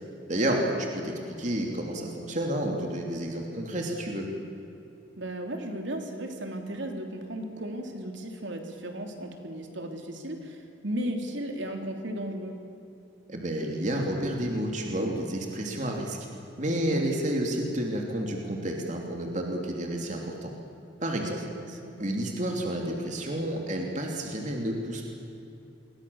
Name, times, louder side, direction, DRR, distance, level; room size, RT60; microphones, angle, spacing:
voice 1, 0.3-0.6 0.9-4.3 13.3-16.2 16.6-20.5 21.0-21.4 22.0-25.1, right 1 dB, 40° right, 1 dB, 3.1 m, -30 dB
voice 2, 5.2-12.6 16.9-17.0 21.2-22.0, right 1 dB, 65° right, 3 dB, 3.3 m, -35 dB
28.0 x 22.5 x 7.2 m, 2.9 s
head